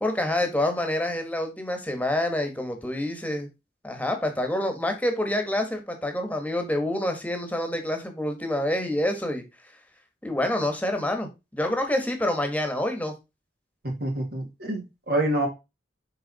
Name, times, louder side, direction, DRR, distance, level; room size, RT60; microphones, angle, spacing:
voice 1, 0.0-3.5 3.8-9.4 10.2-13.1, left 1 dB, 10° left, 1.5 m, -27 dB
voice 2, 14.0-15.5, right 1 dB, 60° right, 2.4 m, -27 dB
6.5 x 4.7 x 4.1 m
head